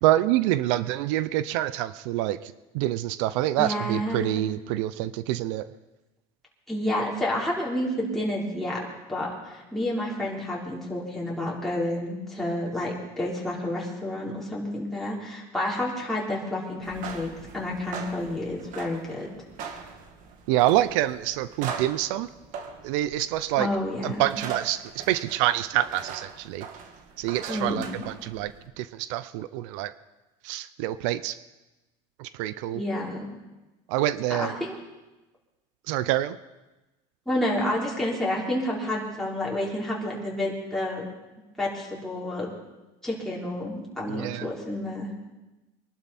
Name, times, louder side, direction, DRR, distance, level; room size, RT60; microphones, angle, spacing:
voice 1, 0.0-5.6 20.5-22.3 22.8-23.7 24.0-26.7 27.2-28.5 28.8-29.9 30.4-31.4 32.2-32.8 33.9-34.6 35.9-36.4 44.1-44.5, right 14 dB, 85° right, 15 dB, 0.6 m, -26 dB
voice 2, 3.6-4.4 6.7-19.3 23.6-24.3 27.5-27.9 32.7-33.2 34.3-34.8 37.3-41.1 41.6-42.5 43.0-45.1, left 1 dB, ahead, -5 dB, 3.7 m, -30 dB
sound 1, 16.8-28.7, right 6 dB, 60° right, 2.0 m, -41 dB
23.0 x 11.5 x 4.3 m, 1.1 s
supercardioid pair, 120°, 15 cm